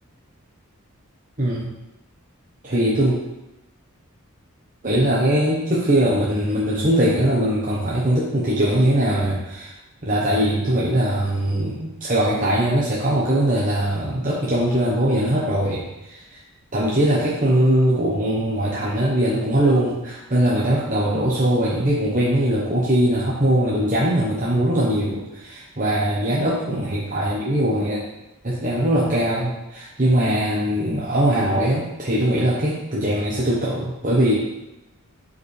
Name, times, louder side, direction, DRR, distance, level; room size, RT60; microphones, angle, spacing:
voice 1, 1.4-1.7 2.6-3.2 4.8-9.7 10.0-16.4 16.7-28.0 28.4-34.3, right 1 dB, 35° right, -6 dB, 1.0 m, -21 dB
11.5 x 5.0 x 3.3 m, 0.96 s
head